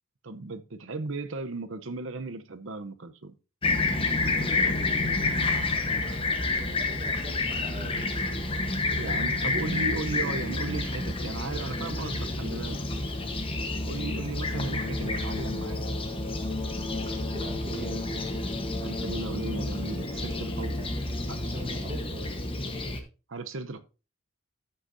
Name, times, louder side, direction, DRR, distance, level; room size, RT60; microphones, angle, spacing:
voice 1, 0.2-3.3 9.0-12.8 13.8-15.9 18.8-20.8 21.3-21.4 23.3-23.8, right 3 dB, 60° right, 0.8 m, -35 dB
Fixed-wing aircraft airplane, 3.6-23.0, left 2 dB, 25° left, 1.1 m, -29 dB
voice 2, 5.6-8.0 17.2-18.1 20.8-21.0 21.4-22.2, right 1 dB, 30° right, 1.6 m, -43 dB
13.5 x 6.3 x 2.7 m
head